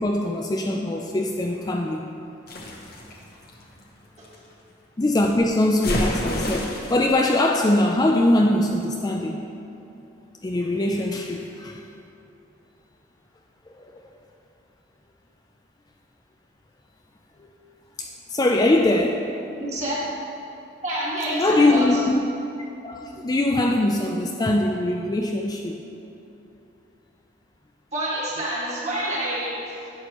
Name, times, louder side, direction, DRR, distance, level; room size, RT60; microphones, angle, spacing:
voice 1, 0.0-2.1 5.0-9.5 10.4-11.8 13.8-13.9 17.4-17.5 18.0-19.3 21.4-22.2 22.8-25.8, left 1 dB, 20° left, 1 dB, 0.3 m, -22 dB
sound 1, 2.5-4.4 5.8-7.1, left 1 dB, 50° left, 1.0 m, -29 dB
voice 2, 19.6-20.0 20.8-22.0 27.9-29.9, right 1 dB, 35° right, -6 dB, 1.9 m, -28 dB
10.5 x 7.9 x 3.0 m, 2.7 s
head